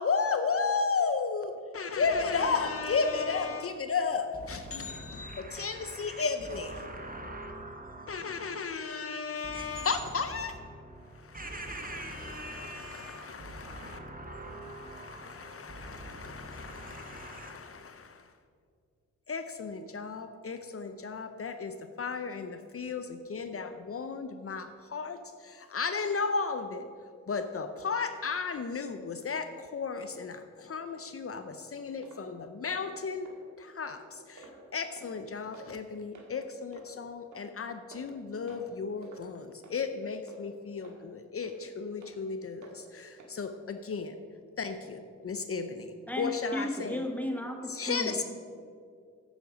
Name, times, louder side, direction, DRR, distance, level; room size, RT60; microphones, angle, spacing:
voice 1, 0.0-6.8 8.1-10.6 11.2-14.0 14.7-18.2 19.3-26.9 27.3-33.3 33.6-44.1 44.6-47.0 47.7-48.2, left 5 dB, 50° left, 0.7 m, -34 dB
voice 2, 2.0-3.7 4.4-8.7 9.4-17.5, right 2 dB, 30° right, 1.6 m, -44 dB
sound 1, 32.0-32.2 32.6-32.8 33.2-33.4 33.8-34.0 34.4-34.6 34.9-35.1 35.5-35.7 36.1-36.3 36.7-36.9 37.3-37.4 37.9-38.2 38.5-38.7 39.0-39.2 39.6-39.8 40.3-40.4 40.8-41.0 41.4-41.5 42.0-42.1 42.6-42.8 43.2-43.3 43.8-43.9, right 3 dB, 70° right, 2.1 m, -51 dB
voice 3, 46.1-48.2, left 1 dB, 5° left, 1.4 m, -34 dB
9.1 x 9.0 x 5.2 m
cardioid pair, 65°, 30 cm